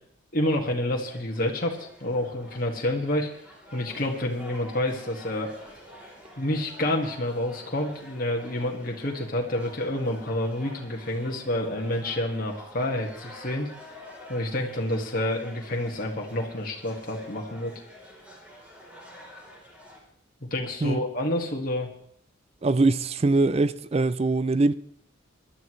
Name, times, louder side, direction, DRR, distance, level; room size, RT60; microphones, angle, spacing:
voice 1, 0.3-3.3 3.7-5.5 6.4-13.7 14.3-17.7 20.5-21.9, left 1 dB, 45° left, 1.8 m, -28 dB
sound 1, 1.0-20.0, left 1 dB, 5° right, 3.5 m, -48 dB
voice 2, 22.6-24.7, right 3 dB, 30° right, 0.4 m, -22 dB
22.0 x 12.0 x 3.2 m
head